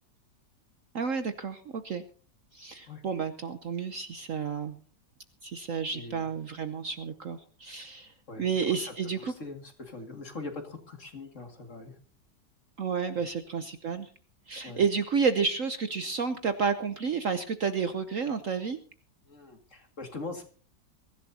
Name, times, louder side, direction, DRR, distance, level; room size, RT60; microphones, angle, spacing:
voice 1, 0.9-2.0 2.5-4.8 5.4-8.1 8.4-9.3 12.8-14.1 14.5-18.8, right 6 dB, 55° right, 9 dB, 1.1 m, -31 dB
voice 2, 5.9-6.3 8.3-8.4 8.8-8.9 9.2-11.9 14.6-14.8 19.3-20.4, left 3 dB, 40° left, 4 dB, 2.6 m, -42 dB
23.5 x 15.0 x 2.8 m, 0.39 s
omnidirectional pair, 2.0 m